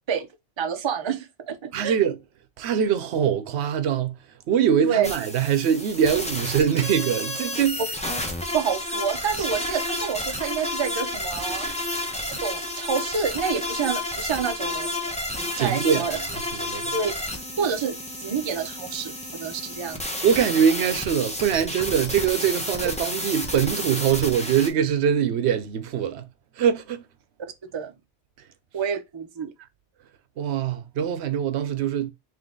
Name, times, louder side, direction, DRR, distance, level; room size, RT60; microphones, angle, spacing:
voice 1, 0.6-2.0 4.8-5.1 8.5-11.7 12.3-15.1 15.6-16.2 16.9-19.1 19.4-20.0 27.7-27.9 28.7-29.5, right 7 dB, 35° right, 0.5 m, -28 dB
voice 2, 1.7-2.2 2.6-4.2 4.5-7.8 15.6-16.9 20.2-26.3 26.6-27.0 30.4-32.1, right 8 dB, 85° right, 0.9 m, -23 dB
sound 1, 5.0-24.7, left 1 dB, 10° left, 0.6 m, -31 dB
3.7 x 2.8 x 3.7 m
omnidirectional pair, 1.1 m